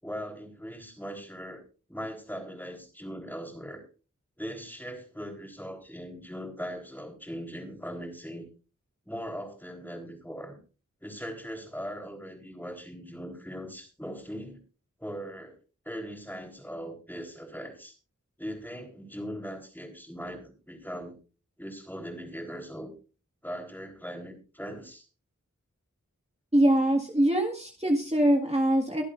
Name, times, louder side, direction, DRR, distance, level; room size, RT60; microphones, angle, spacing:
voice 1, 0.0-3.8 4.4-8.5 9.1-10.6 11.0-14.6 15.0-15.6 15.9-18.0 18.4-21.2 21.6-22.9 23.4-25.1, equal, 5° left, 3 dB, 3.8 m, -40 dB
voice 2, 26.5-29.0, right 1 dB, 20° right, 1 dB, 1.9 m, -23 dB
24.0 x 8.3 x 2.6 m, 0.34 s
wide cardioid pair, 45°, 31 cm